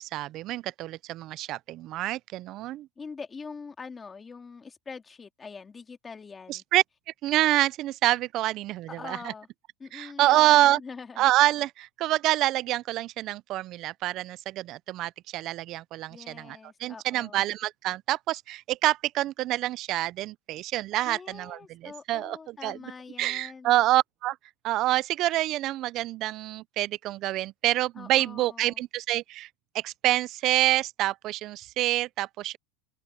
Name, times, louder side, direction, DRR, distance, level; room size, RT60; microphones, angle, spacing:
voice 1, 0.0-2.9 6.5-6.8 7.2-9.2 9.9-10.8 11.2-22.8 23.2-24.4 24.6-29.5 29.7-32.6, right 15 dB, 35° right, 0.3 m, -27 dB
voice 2, 3.0-6.6 8.9-9.5 9.8-11.2 16.1-17.5 21.0-23.7 28.0-28.8, left 5 dB, 15° left, 2.0 m, -43 dB
open air
supercardioid pair, 165°, 0 cm